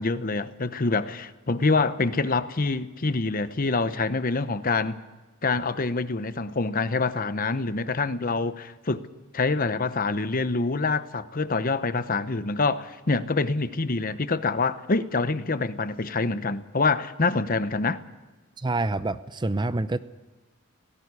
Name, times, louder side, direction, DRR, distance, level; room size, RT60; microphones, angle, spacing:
voice 1, 0.0-5.0 5.4-9.1 9.3-18.0, left 3 dB, 40° left, 0.9 m, -26 dB
voice 2, 18.6-20.0, right 2 dB, 20° right, 0.6 m, -27 dB
18.5 x 17.0 x 9.7 m
head